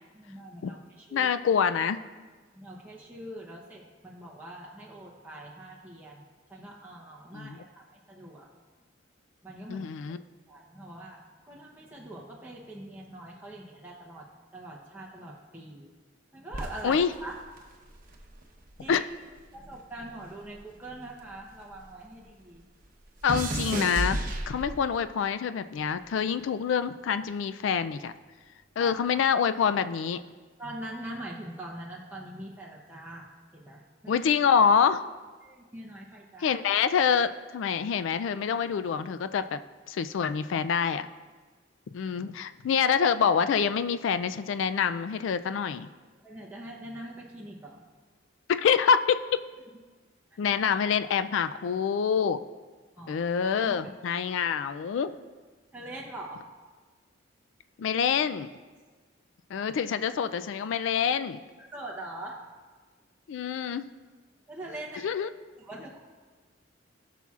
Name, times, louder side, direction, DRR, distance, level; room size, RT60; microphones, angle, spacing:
voice 1, 0.1-1.3 2.5-6.2 6.5-8.5 9.4-9.8 10.5-15.9 16.3-17.3 18.8-19.0 19.5-22.6 28.7-28.9 30.6-34.2 35.4-36.6 46.2-47.8 50.3-50.4 53.0-53.9 55.7-56.5 61.6-62.4 64.5-65.1 65.6-66.0, right 1 dB, 10° right, -4 dB, 0.8 m, -43 dB
voice 2, 1.1-2.0 7.3-7.6 9.7-10.2 16.8-17.1 18.9-19.0 23.2-24.2 24.5-28.1 28.8-30.2 34.1-35.0 36.4-39.6 39.9-41.1 41.9-45.9 48.5-49.2 50.4-52.4 53.1-55.1 57.8-58.5 59.5-61.4 63.3-63.9 65.0-65.3, left 7 dB, 75° left, 11 dB, 0.3 m, -26 dB
sound 1, 16.5-19.0 19.3-22.0 22.2-25.0 25.8-26.1, right 1 dB, 45° right, 0.9 m, -35 dB
17.0 x 5.8 x 2.4 m, 1.4 s
head